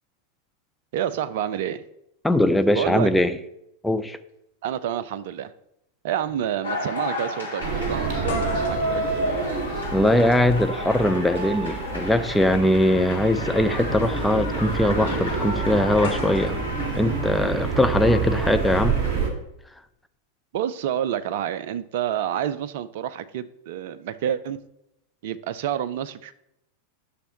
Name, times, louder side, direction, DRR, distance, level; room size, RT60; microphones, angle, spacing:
voice 1, 0.9-1.8 2.7-3.1 4.6-5.5 6.0-9.2 20.5-24.6 25.2-26.3, right 10 dB, 50° right, 14 dB, 0.4 m, -28 dB
voice 2, 2.2-3.4 3.8-4.2 9.9-16.6 16.9-19.0, left 1 dB, 5° left, 9 dB, 0.5 m, -21 dB
sound 1, 6.3-6.5 6.8-6.9 8.3-12.3 13.5-13.6 16.0-18.1, left 5 dB, 60° left, 1.5 m, -41 dB
sound 2, 6.6-19.2, left 1 dB, 80° left, 2.1 m, -32 dB
sound 3, 7.6-19.3, right 5 dB, 35° right, 1.9 m, -29 dB
10.0 x 6.5 x 2.9 m, 0.81 s
figure-of-eight pair, 90°, 0 cm